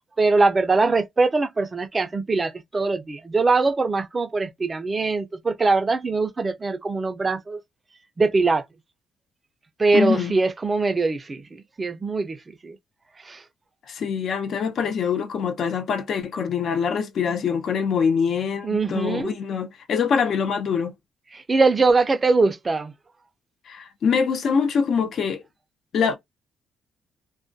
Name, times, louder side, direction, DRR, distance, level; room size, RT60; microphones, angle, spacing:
voice 1, 0.2-7.6 8.2-8.6 9.8-12.8 13.2-13.4 18.6-19.4 21.3-22.9, right 3 dB, 30° right, 0.4 m, -22 dB
voice 2, 9.9-10.3 13.9-20.9 23.7-25.4 25.9-26.2, left 6 dB, 60° left, 0.5 m, -24 dB
2.3 x 2.1 x 2.5 m
cardioid pair, 90°, 0 cm